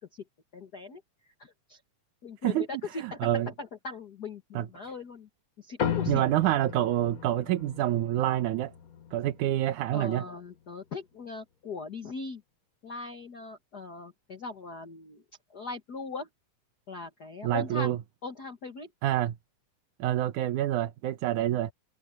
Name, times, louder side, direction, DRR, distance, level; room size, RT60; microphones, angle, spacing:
voice 1, 0.5-1.0 1.4-1.8 2.2-5.3 5.6-6.2 9.9-12.4 12.8-15.2 15.5-16.3 16.9-17.9 18.2-18.9, left 4 dB, 40° left, 1.7 m, -40 dB
voice 2, 2.4-3.5 4.5-4.7 6.1-8.7 9.1-10.3 17.4-18.0 19.0-19.4 20.0-21.7, right 13 dB, 80° right, 2.4 m, -27 dB
sound 1, 5.8-10.5, left 8 dB, 75° left, 0.8 m, -36 dB
omnidirectional pair, 3.5 m